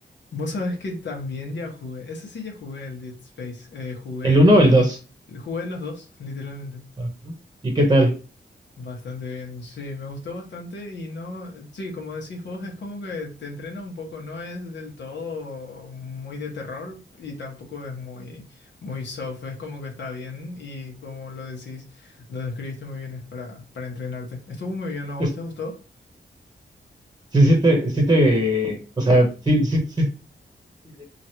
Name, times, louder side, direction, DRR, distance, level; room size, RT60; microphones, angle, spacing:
voice 1, 0.3-4.7 5.3-6.8 8.8-25.7, left 3 dB, 70° left, 0 dB, 1.0 m, -34 dB
voice 2, 4.2-5.0 7.0-7.3 7.6-8.1 25.2-25.3 27.3-30.1 31.0-31.1, right 1 dB, 20° right, 3 dB, 0.9 m, -18 dB
3.0 x 2.5 x 2.9 m, 0.34 s
wide cardioid pair, 110°, 19 cm